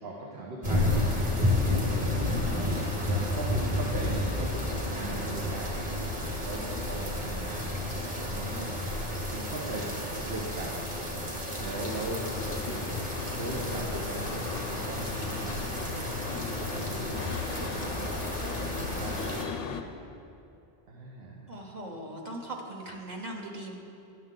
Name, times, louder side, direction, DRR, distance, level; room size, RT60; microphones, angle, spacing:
voice 1, 0.0-5.9 6.4-8.7 9.0-10.9 11.6-17.3 17.6-19.3 20.9-21.5, right 2 dB, 80° right, -3 dB, 1.1 m, -40 dB
sound 1, 0.6-19.4, left 1 dB, 30° right, 1.2 m, -31 dB
sound 2, 11.9-19.8, left 6 dB, 70° left, 0.7 m, -37 dB
voice 2, 21.5-23.8, right 1 dB, 45° right, -1 dB, 0.9 m, -39 dB
10.5 x 6.4 x 3.7 m, 2.7 s
omnidirectional pair, 1.0 m